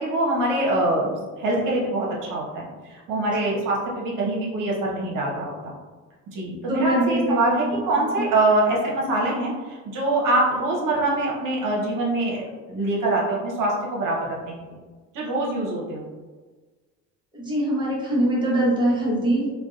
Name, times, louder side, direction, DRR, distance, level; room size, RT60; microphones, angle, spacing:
voice 1, 0.0-2.7 3.1-5.7 6.3-14.8 15.1-16.0, right 2 dB, 65° right, -3 dB, 0.7 m, -24 dB
voice 2, 6.7-7.4 7.9-8.1 17.3-19.5, right 1 dB, 15° right, -5 dB, 0.9 m, -23 dB
2.6 x 2.1 x 2.3 m, 1.3 s
supercardioid pair, 85°, 34 cm